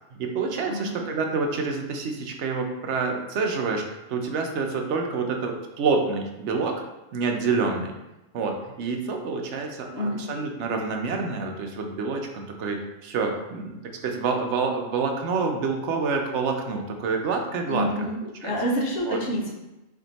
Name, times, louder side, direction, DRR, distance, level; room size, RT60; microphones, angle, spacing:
voice 1, 0.1-6.8 7.1-7.9 8.3-17.9 18.4-18.5 19.0-19.2, right 4 dB, 65° right, 3 dB, 0.9 m, -27 dB
voice 2, 0.6-1.0 9.9-10.2 17.7-19.7, equal, 60° left, -2 dB, 1.2 m, -28 dB
4.4 x 2.7 x 3.9 m, 0.99 s
omnidirectional pair, 1.3 m